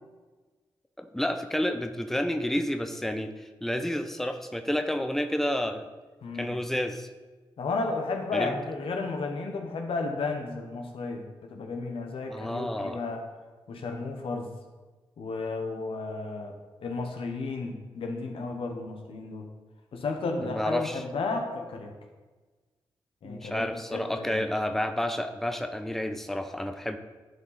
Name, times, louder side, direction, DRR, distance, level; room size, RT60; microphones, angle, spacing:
voice 1, 1.0-5.9 6.3-7.1 8.3-8.5 12.3-13.0 20.4-21.0 23.2-27.0, left 1 dB, 5° left, 7 dB, 0.7 m, -30 dB
voice 2, 6.2-6.5 7.6-13.2 13.7-14.5 15.2-16.5 16.8-19.5 19.9-21.9 23.2-23.6 23.9-24.4, left 3 dB, 80° left, 3 dB, 1.1 m, -33 dB
10.5 x 4.8 x 4.2 m, 1.3 s
supercardioid pair, 45°, 9 cm